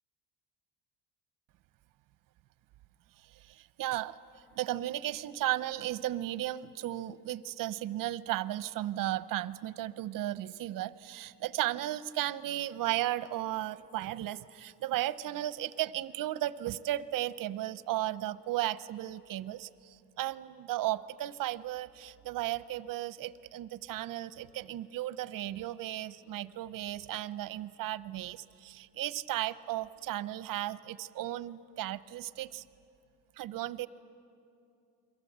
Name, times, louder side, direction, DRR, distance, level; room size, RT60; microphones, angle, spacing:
voice 1, 3.5-32.6 33.4-33.9, right 14 dB, 50° right, 16 dB, 0.7 m, -35 dB
29.0 x 22.5 x 8.0 m, 2.6 s
cardioid pair, 155°, 41 cm